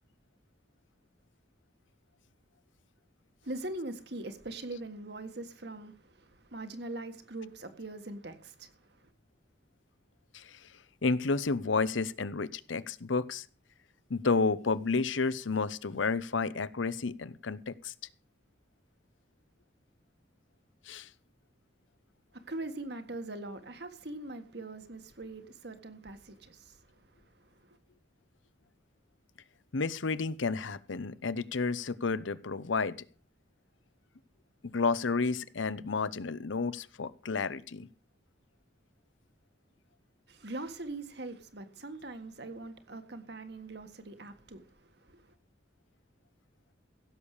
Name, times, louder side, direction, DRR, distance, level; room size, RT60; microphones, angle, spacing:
voice 1, 3.4-9.1 22.3-27.8 40.3-45.3, right 2 dB, 60° right, 1.7 m, -42 dB
voice 2, 10.3-10.7 11.0-13.5 14.1-17.9 20.9-21.1 29.7-33.0 34.6-37.9, left 4 dB, 90° left, 0.8 m, -31 dB
16.0 x 7.3 x 6.6 m
head